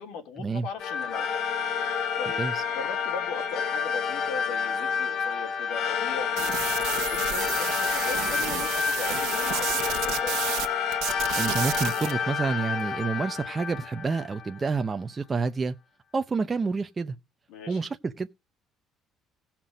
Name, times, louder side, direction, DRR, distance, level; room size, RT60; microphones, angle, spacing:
voice 1, 0.0-1.5 2.2-6.6 6.8-10.3 17.5-17.8, left 5 dB, 80° left, 3.5 m, -39 dB
sound 1, 0.8-14.6, left 7 dB, 55° left, 0.9 m, -29 dB
sound 2, 6.4-10.7 10.9-12.1, right 15 dB, 85° right, 1.0 m, -31 dB
voice 2, 11.4-15.8 16.1-17.2 17.7-18.3, right 4 dB, 20° right, 0.6 m, -28 dB
17.5 x 5.9 x 5.1 m
cardioid pair, 140°, 0 cm